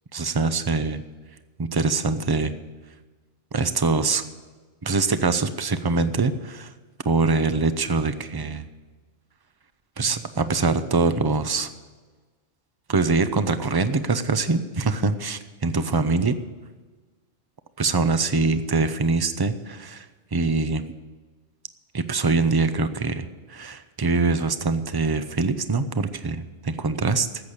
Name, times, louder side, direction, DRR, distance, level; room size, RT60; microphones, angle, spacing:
voice 1, 0.1-1.0 1.6-2.5 3.5-4.2 4.8-6.7 7.1-8.7 10.0-11.7 12.9-16.4 17.8-20.1 20.3-20.8 21.9-27.3, right 4 dB, 25° right, 11 dB, 0.6 m, -23 dB
14.0 x 8.1 x 8.7 m, 1.3 s
omnidirectional pair, 1.2 m